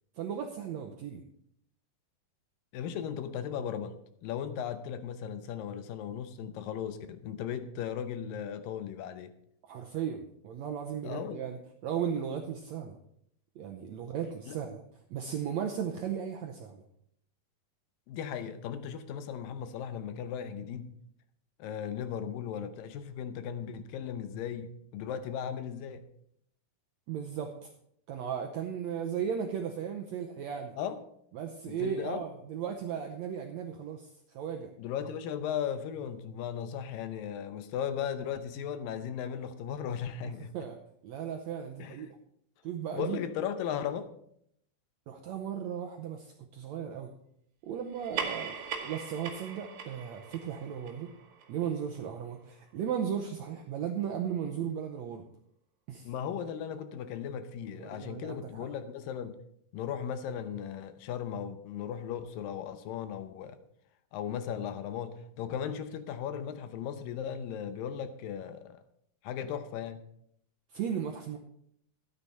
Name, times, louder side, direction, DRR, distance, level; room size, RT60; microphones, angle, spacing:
voice 1, 0.2-1.2 9.7-13.0 13.6-14.8 15.1-16.8 27.1-27.7 28.1-30.7 31.3-34.7 40.4-40.8 41.0-42.2 42.6-43.2 45.1-47.1 47.6-51.1 51.5-55.2 55.9-56.1 57.7-58.7 70.7-71.4, right 8 dB, 80° right, 1.6 m, -36 dB
voice 2, 2.7-9.3 11.0-11.4 14.5-14.6 18.1-20.9 21.6-26.1 30.8-31.0 31.7-32.2 34.8-40.6 41.8-42.1 42.9-44.1 56.0-59.4 59.7-63.6 64.1-68.8 69.2-70.1, left 8 dB, 80° left, 2.4 m, -37 dB
sound 1, 47.9-52.8, right 6 dB, 60° right, 2.5 m, -41 dB
13.0 x 9.7 x 4.2 m
omnidirectional pair, 4.1 m